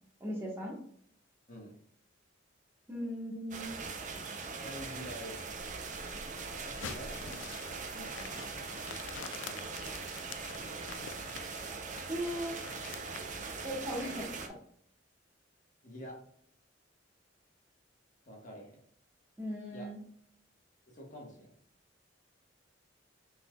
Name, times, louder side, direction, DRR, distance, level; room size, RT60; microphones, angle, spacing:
voice 1, 0.2-0.7 2.9-3.7 12.1-12.5 13.6-14.5 19.4-20.0, equal, 15° right, -3 dB, 1.4 m, -37 dB
sound 1, 3.5-14.5, right 4 dB, 40° right, 0.7 m, -41 dB
voice 2, 4.6-5.4 6.6-8.9 9.4-10.1 10.5-11.3 15.8-16.2 18.3-18.8 19.7-19.9 20.9-21.5, equal, 45° left, -2 dB, 1.5 m, -48 dB
sound 2, 6.5-13.8, left 8 dB, 80° left, 0.4 m, -48 dB
6.0 x 3.7 x 2.4 m, 0.63 s
head